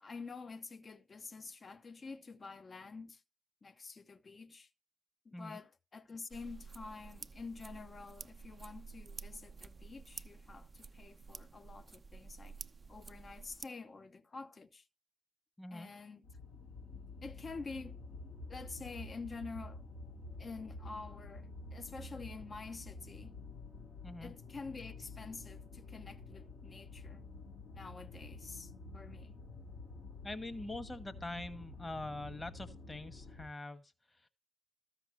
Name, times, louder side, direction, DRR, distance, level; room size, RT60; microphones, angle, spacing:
voice 1, 0.0-3.2 3.6-4.7 5.2-12.6 12.9-14.8 15.7-16.3 17.2-18.0 18.5-19.8 20.4-23.3 24.2-27.3 27.7-29.4, left 4 dB, 45° left, 0.8 m, -48 dB
sound 1, 6.3-13.6, right 4 dB, 35° right, 0.5 m, -51 dB
voice 2, 15.6-15.9 24.0-24.3 30.2-34.3, left 2 dB, 25° left, 1.3 m, -44 dB
sound 2, 16.2-33.5, left 3 dB, 75° left, 1.9 m, -49 dB
13.5 x 6.0 x 2.9 m
hypercardioid pair, 40°, 0 cm